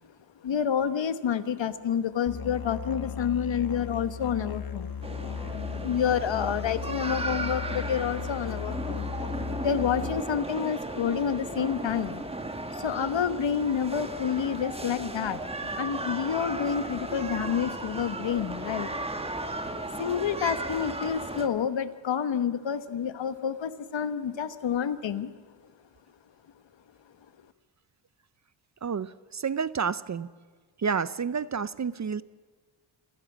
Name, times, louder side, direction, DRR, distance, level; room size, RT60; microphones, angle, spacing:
voice 1, 0.4-4.9 5.8-9.0 9.6-12.2 12.7-19.1 20.0-25.3, left 8 dB, 65° left, 12 dB, 1.3 m, -29 dB
Musical instrument, 2.3-10.2, left 7 dB, 45° left, 1.2 m, -36 dB
sound 1, 3.6-20.8, right 2 dB, 55° right, 4.2 m, -55 dB
sound 2, 5.0-21.5, right 2 dB, 10° right, 1.4 m, -35 dB
voice 2, 28.8-30.3 30.8-32.2, right 6 dB, 35° right, 17 dB, 0.6 m, -30 dB
27.5 x 16.0 x 7.3 m, 1.5 s
wide cardioid pair, 120°, 48 cm